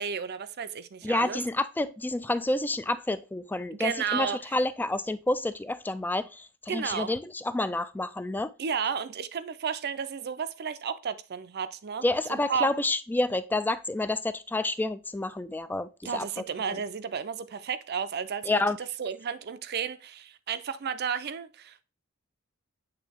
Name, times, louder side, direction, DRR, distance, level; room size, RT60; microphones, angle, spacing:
voice 1, 0.0-1.4 3.7-4.5 6.7-7.1 8.6-12.7 16.0-21.8, right 6 dB, 50° right, 0.5 m, -33 dB
voice 2, 1.0-8.5 12.0-16.2 18.5-18.8, left 2 dB, 10° left, 0.3 m, -29 dB
8.3 x 3.3 x 3.4 m
head